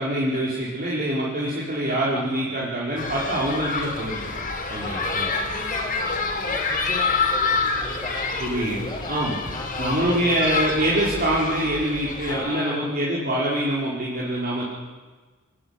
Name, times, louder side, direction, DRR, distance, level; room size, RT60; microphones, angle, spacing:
voice 1, 0.0-4.3 4.7-5.3 8.4-9.4 9.8-14.6, right 1 dB, 45° right, -6 dB, 5.0 m, -25 dB
voice 2, 2.1-2.6 4.8-8.4 8.7-10.6 12.3-12.9, left 2 dB, 20° left, 0 dB, 5.2 m, -37 dB
sound 1, 3.0-12.4, left 4 dB, 45° left, 4.9 m, -27 dB
24.5 x 20.0 x 9.8 m, 1.3 s
head